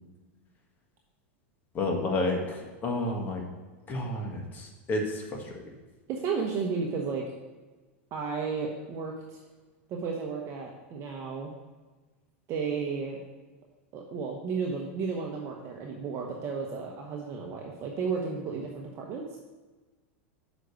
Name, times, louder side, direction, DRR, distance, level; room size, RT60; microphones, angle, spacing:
voice 1, 1.7-2.4 2.8-3.4 3.9-5.4, left 2 dB, 25° left, 1 dB, 1.5 m, -30 dB
voice 2, 6.1-7.2 8.1-9.4 9.9-11.5 12.5-13.2 13.9-19.4, right 5 dB, 40° right, 0 dB, 1.0 m, -33 dB
6.4 x 5.2 x 6.7 m, 1.3 s
supercardioid pair, 125°, 7 cm